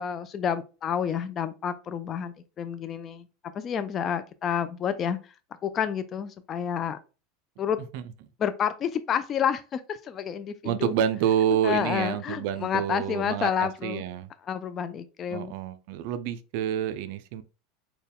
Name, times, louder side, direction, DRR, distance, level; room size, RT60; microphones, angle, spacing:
voice 1, 0.0-3.2 3.6-5.2 5.6-7.0 7.6-7.8 8.4-10.9 11.6-14.0 14.5-15.5, left 8 dB, 30° left, 0.3 m, -29 dB
voice 2, 10.6-14.3 15.3-17.4, right 10 dB, 65° right, 0.4 m, -28 dB
4.3 x 2.2 x 3.4 m
supercardioid pair, 130°, 0 cm